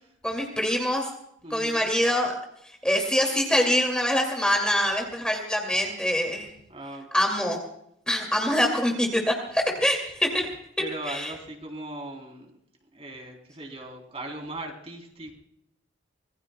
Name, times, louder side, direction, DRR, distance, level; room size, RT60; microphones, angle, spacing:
voice 1, 0.2-1.1 1.5-2.4 2.8-6.5 7.1-7.6 8.1-10.5 11.1-11.3, equal, 5° left, 1 dB, 2.3 m, -24 dB
voice 2, 1.4-1.9 6.7-7.1 9.7-9.8 10.8-12.5 12.9-15.3, right 1 dB, 30° right, 2 dB, 3.5 m, -38 dB
26.0 x 20.5 x 2.2 m, 0.74 s
head